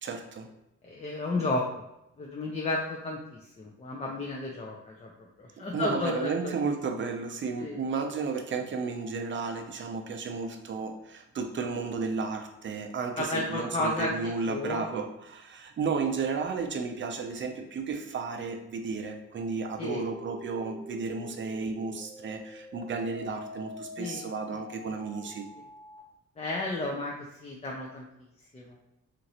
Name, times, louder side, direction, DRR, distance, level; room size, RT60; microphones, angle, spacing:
voice 1, 0.0-0.5 5.7-25.5, right 4 dB, 40° right, 5 dB, 0.5 m, -33 dB
voice 2, 0.8-1.6 2.2-5.1 5.4-6.6 7.6-7.8 13.2-14.8 19.8-20.0 24.0-24.2 24.5-25.0 26.4-28.0 28.5-28.8, left 2 dB, 20° left, -1 dB, 0.4 m, -32 dB
sound 1, 20.0-26.0, left 1 dB, 75° left, 1.2 m, -46 dB
3.0 x 2.5 x 2.8 m, 0.87 s
cardioid pair, 85°, 30 cm